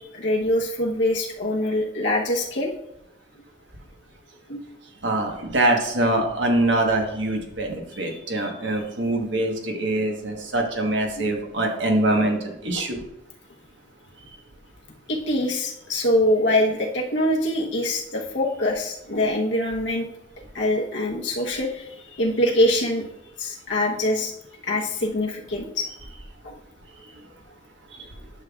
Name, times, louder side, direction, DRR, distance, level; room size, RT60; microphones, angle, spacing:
voice 1, 0.1-2.7 4.5-4.6 7.9-8.8 10.4-10.5 11.2-11.3 12.7-12.8 15.1-20.1 20.5-23.0 23.4-24.3 24.6-25.9 26.4-26.6, left 1 dB, 80° left, -2 dB, 1.0 m, -24 dB
voice 2, 5.0-13.0 27.9-28.1, right 1 dB, 80° right, 2 dB, 1.3 m, -24 dB
10.5 x 5.7 x 2.4 m, 0.87 s
head